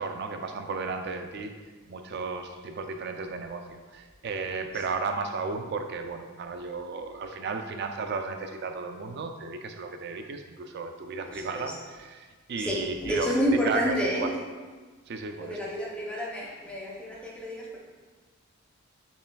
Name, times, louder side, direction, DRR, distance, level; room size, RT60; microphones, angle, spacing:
voice 1, 0.0-1.5 1.9-13.3 13.6-14.3 15.1-15.6, right 4 dB, 50° right, 6 dB, 0.4 m, -34 dB
voice 2, 11.3-11.7 12.6-14.4 15.4-17.8, equal, 5° left, -4 dB, 0.6 m, -29 dB
7.3 x 3.2 x 2.3 m, 1.4 s
head